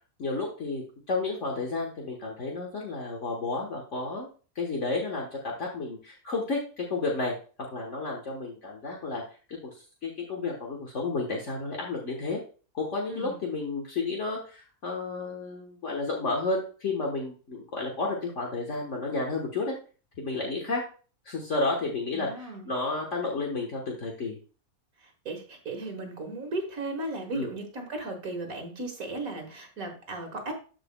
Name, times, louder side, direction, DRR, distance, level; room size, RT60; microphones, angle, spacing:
voice 1, 0.2-4.3 4.5-7.3 7.7-9.2 9.5-9.7 10.0-12.4 12.7-19.7 20.2-20.8 21.2-24.4 27.3-27.5, left 3 dB, 55° left, -1 dB, 1.6 m, -31 dB
voice 2, 13.1-13.4 22.1-22.7 25.0-30.5, right 2 dB, 70° right, 4 dB, 2.0 m, -36 dB
13.5 x 4.9 x 2.2 m, 0.36 s
omnidirectional pair, 1.5 m